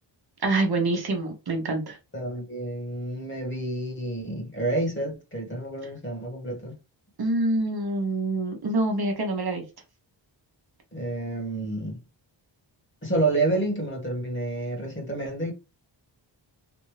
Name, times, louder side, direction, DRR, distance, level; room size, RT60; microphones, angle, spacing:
voice 1, 0.4-2.0 7.2-9.6, right 2 dB, 55° right, 1.1 m, -26 dB
voice 2, 2.1-6.7 10.9-12.0 13.0-15.5, right 2 dB, 25° left, 1.7 m, -29 dB
3.4 x 2.6 x 3.2 m
wide cardioid pair, 85°, 46 cm